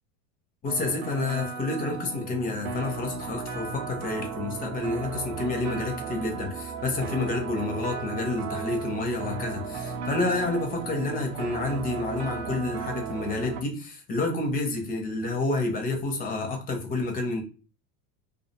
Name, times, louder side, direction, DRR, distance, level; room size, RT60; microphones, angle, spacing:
voice 1, 0.6-17.4, left 2 dB, 20° left, 0.4 m, -29 dB
sound 1, 0.7-13.6, right 5 dB, 45° right, 0.6 m, -35 dB
2.3 x 2.1 x 2.7 m
supercardioid pair, 120°, 50 cm